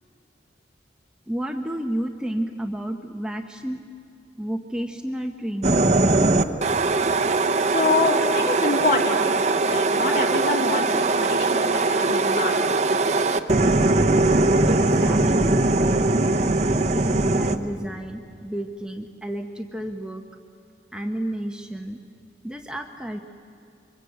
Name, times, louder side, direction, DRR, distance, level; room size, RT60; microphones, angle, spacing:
voice 1, 1.3-3.8 4.4-5.9 14.7-15.6 16.9-20.2 20.9-22.0 22.4-23.2, right 1 dB, 5° right, 3 dB, 0.9 m, -31 dB
sound 1, 5.6-17.6, right 2 dB, 35° right, 0.9 m, -21 dB
voice 2, 7.7-9.2 9.6-12.8, left 3 dB, 45° left, 2 dB, 2.8 m, -26 dB
26.0 x 24.0 x 8.0 m, 2.5 s
head